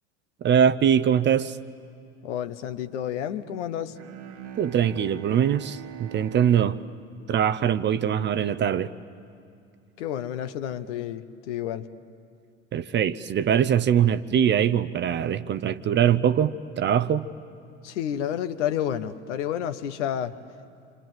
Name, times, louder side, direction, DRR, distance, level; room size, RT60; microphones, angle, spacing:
voice 1, 0.4-1.6 4.6-6.8 7.3-8.9 12.7-17.3, right 9 dB, 30° right, 14 dB, 0.7 m, -22 dB
voice 2, 2.2-4.0 10.0-11.9 17.8-20.3, left 10 dB, 65° left, 10 dB, 1.2 m, -30 dB
Bowed string instrument, 3.9-8.2, right 9 dB, 70° right, 1.6 m, -43 dB
28.5 x 26.0 x 7.7 m, 2.6 s
hypercardioid pair, 80°, 38 cm